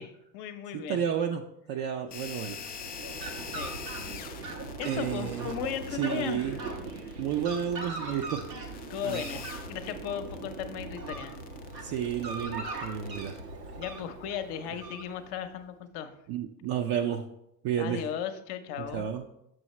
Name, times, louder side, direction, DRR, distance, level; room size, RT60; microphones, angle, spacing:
voice 1, 0.0-1.0 3.5-3.7 4.4-4.5 4.8-6.6 8.1-8.2 8.9-11.3 13.8-16.1 17.8-19.1, left 8 dB, 55° left, 8 dB, 0.8 m, -36 dB
voice 2, 0.7-1.4 1.7-2.6 4.8-5.5 6.0-6.6 7.2-8.4 9.0-9.2 11.8-13.4 16.3-17.2 17.6-18.0 18.9-19.2, right 9 dB, 55° right, 3 dB, 0.6 m, -31 dB
sound 1, 2.1-13.4, left 8 dB, 20° left, 0.3 m, -45 dB
Fowl, 2.5-15.5, right 3 dB, 90° right, 1.2 m, -40 dB
6.9 x 6.2 x 3.1 m, 0.81 s
hypercardioid pair, 75°, 47 cm